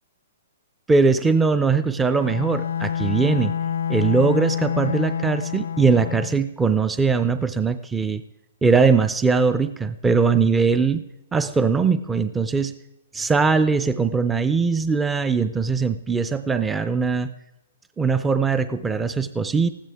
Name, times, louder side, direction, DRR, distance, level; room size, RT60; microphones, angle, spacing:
voice 1, 0.9-3.5 3.9-8.2 8.6-11.0 11.3-12.7 13.1-17.3 18.0-19.7, right 4 dB, 5° right, 11 dB, 0.4 m, -21 dB
Bowed string instrument, 2.2-6.5, left 8 dB, 70° left, 0.5 m, -27 dB
20.0 x 15.0 x 3.5 m, 0.91 s
hypercardioid pair, 170°, 0 cm